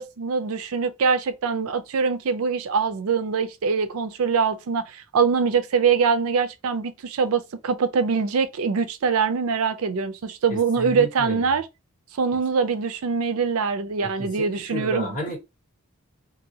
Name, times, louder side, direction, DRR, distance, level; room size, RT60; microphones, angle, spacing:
voice 1, 0.0-11.7 12.2-15.2, right 5 dB, 80° right, 0.4 m, -23 dB
voice 2, 10.5-11.6 14.2-15.4, right 1 dB, 40° left, 1.6 m, -32 dB
2.7 x 2.7 x 2.7 m
head